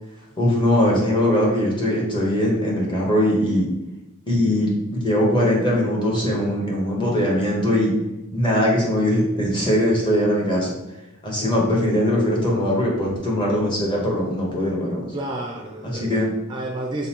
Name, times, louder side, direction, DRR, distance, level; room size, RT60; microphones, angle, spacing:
voice 1, 0.4-3.7 4.3-7.9 8.3-10.7 11.2-15.1 15.8-16.3, equal, 20° left, -3 dB, 1.0 m, -21 dB
voice 2, 15.1-17.1, right 1 dB, 20° right, 0 dB, 0.4 m, -31 dB
3.9 x 3.9 x 2.9 m, 1.0 s
head